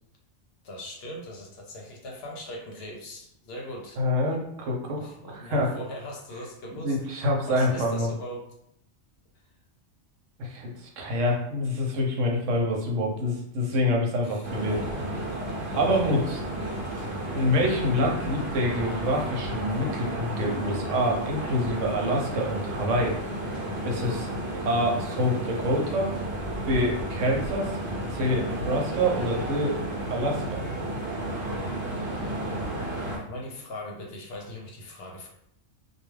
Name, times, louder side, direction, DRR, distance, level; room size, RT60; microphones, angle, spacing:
voice 1, 0.6-4.0 5.0-8.5 14.2-16.1 16.6-17.1 33.1-35.3, left 1 dB, 65° left, 0 dB, 0.7 m, -40 dB
voice 2, 4.0-5.0 5.3-5.7 6.8-8.1 10.4-14.8 15.8-16.4 17.3-23.2 23.8-24.3 24.6-26.1 26.7-27.7 28.1-29.7 30.1-30.6, equal, 85° right, 0 dB, 1.0 m, -26 dB
sound 1, 14.4-33.2, right 1 dB, 60° right, 1.0 m, -32 dB
2.3 x 2.3 x 3.1 m, 0.76 s
omnidirectional pair, 1.3 m